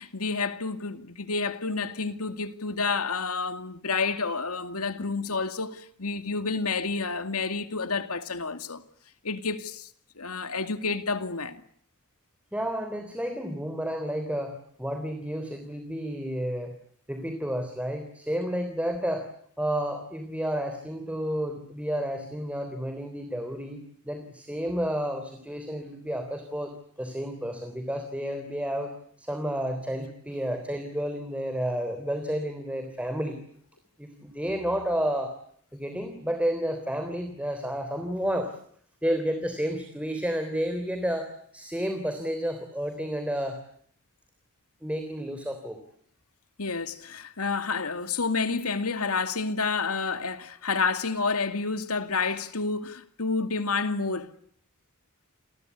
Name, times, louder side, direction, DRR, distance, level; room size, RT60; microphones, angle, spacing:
voice 1, 0.0-8.8 9.2-9.9 10.2-11.6 46.6-54.3, left 4 dB, 85° left, 2.4 m, -29 dB
voice 2, 12.5-16.7 17.1-19.3 19.6-33.4 34.0-35.3 35.7-38.6 39.0-41.3 41.5-43.6 44.8-45.8, equal, 5° right, 3.4 m, -31 dB
30.0 x 24.0 x 8.3 m
head